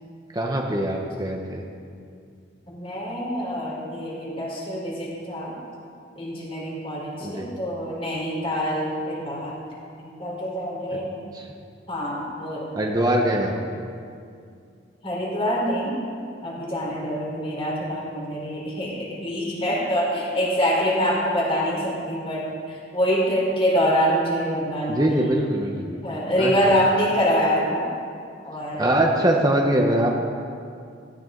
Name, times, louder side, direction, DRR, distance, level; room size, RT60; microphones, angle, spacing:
voice 1, 0.3-1.6 7.2-7.5 11.3-11.5 12.8-13.5 24.9-26.0 26.4-26.5 28.8-30.1, right 1 dB, 20° right, 0 dB, 1.1 m, -22 dB
voice 2, 2.7-5.5 6.2-9.5 10.0-11.1 11.9-12.7 15.0-16.0 16.4-25.4 26.0-27.9 28.5-29.2, equal, 30° left, -4 dB, 4.3 m, -25 dB
17.0 x 16.5 x 4.0 m, 2.4 s
head